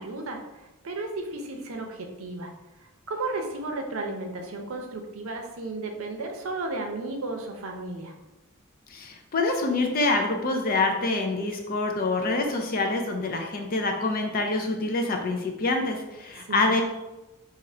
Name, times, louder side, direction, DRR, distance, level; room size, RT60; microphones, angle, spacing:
voice 1, 0.0-2.5 2.8-8.1 16.4-16.7, right 2 dB, 75° right, 3 dB, 0.6 m, -34 dB
voice 2, 8.9-16.8, left 2 dB, 45° left, 3 dB, 0.5 m, -26 dB
2.9 x 2.5 x 4.2 m, 1.0 s
head